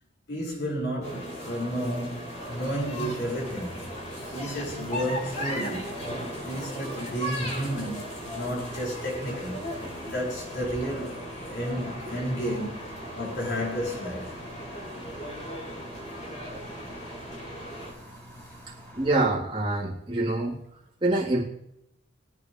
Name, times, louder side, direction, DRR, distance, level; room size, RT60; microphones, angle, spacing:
voice 1, 0.3-3.8 4.3-6.0 6.4-9.6 10.0-14.3, equal, 60° left, 5.4 m, -32 dB
sound 1, 1.0-17.9, equal, 35° left, 4.0 m, -37 dB
sound 2, 2.3-19.3, right 1 dB, 10° left, 5.4 m, -47 dB
voice 2, 18.9-20.6 21.0-21.4, right 2 dB, 25° right, 3.2 m, -25 dB
22.5 x 8.9 x 3.2 m
head